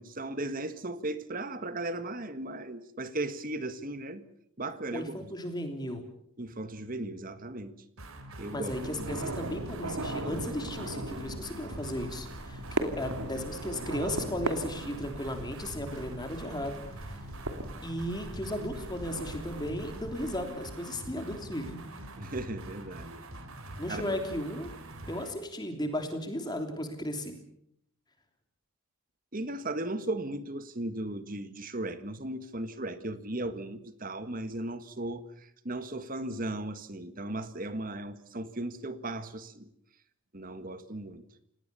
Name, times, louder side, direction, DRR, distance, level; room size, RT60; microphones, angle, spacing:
voice 1, 0.0-4.2 4.6-5.3 6.4-7.7 8.4-8.7 22.2-23.2 23.9-24.2 29.3-39.7 40.3-41.2, right 1 dB, 40° right, 11 dB, 1.7 m, -36 dB
voice 2, 4.9-6.0 8.5-16.8 17.8-21.8 23.8-24.7 25.1-27.4, left 1 dB, 20° left, 5 dB, 3.2 m, -35 dB
sound 1, 8.0-25.4, right 1 dB, 75° right, 3.8 m, -44 dB
sound 2, 8.7-20.5, right 1 dB, 90° right, 2.9 m, -39 dB
29.5 x 18.0 x 7.0 m, 0.71 s
head